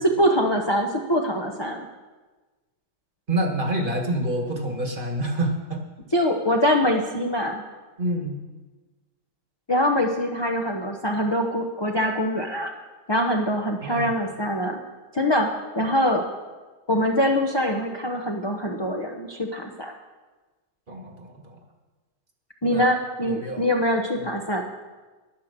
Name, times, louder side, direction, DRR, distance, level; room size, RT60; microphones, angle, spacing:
voice 1, 0.0-1.9 6.1-7.6 9.7-12.7 13.1-14.8 15.1-15.5 15.7-16.2 16.9-19.9 22.6-24.6, equal, 25° left, 1 dB, 0.6 m, -23 dB
voice 2, 3.3-5.8 8.0-8.4 13.8-14.1 20.9-21.6 22.7-23.0 23.2-23.7 24.2-24.3, right 1 dB, 35° right, 3 dB, 1.5 m, -27 dB
10.0 x 10.0 x 6.7 m, 1.3 s
omnidirectional pair, 1.8 m